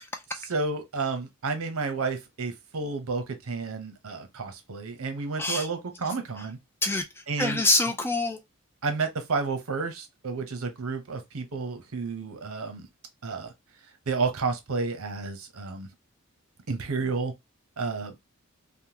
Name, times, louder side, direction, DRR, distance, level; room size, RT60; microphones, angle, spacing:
voice 1, 0.5-6.6 7.3-7.6 8.8-12.9 13.2-13.5 14.1-15.9 16.7-17.3 17.8-18.2, right 4 dB, 75° right, 0.7 m, -31 dB
voice 2, 6.8-8.4, left 2 dB, 10° left, 0.3 m, -26 dB
3.4 x 2.1 x 2.8 m
head